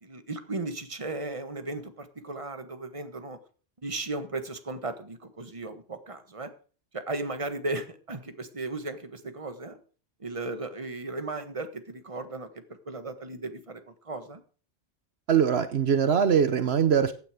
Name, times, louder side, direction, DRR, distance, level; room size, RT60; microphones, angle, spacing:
voice 1, 0.0-3.4 3.8-6.5 6.9-9.8 10.2-12.5 12.8-14.4, right 2 dB, 30° right, 9 dB, 1.5 m, -36 dB
voice 2, 15.3-17.1, right 7 dB, 70° right, 11 dB, 1.1 m, -22 dB
16.0 x 9.3 x 5.0 m, 0.40 s
omnidirectional pair, 1.1 m